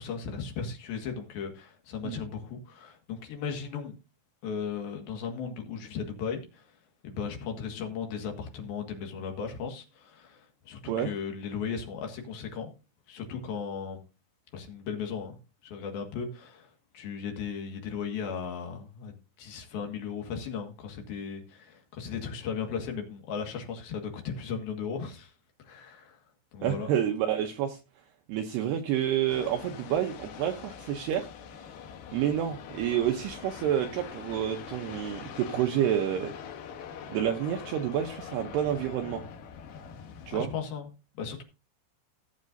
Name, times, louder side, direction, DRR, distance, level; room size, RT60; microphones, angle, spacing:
voice 1, 0.0-4.0 4.4-6.7 7.0-12.7 13.1-14.0 14.5-15.4 15.6-16.7 16.9-25.3 25.6-26.2 26.5-26.9 40.3-40.9 41.2-41.4, left 6 dB, 60° left, 3.1 m, -36 dB
voice 2, 26.6-27.8 28.3-31.3 32.1-36.3 37.1-39.2 40.3-40.5, right 10 dB, 80° right, 2.4 m, -29 dB
sound 1, 29.3-40.4, left 7 dB, 80° left, 2.0 m, -43 dB
17.0 x 7.4 x 2.6 m
omnidirectional pair, 5.6 m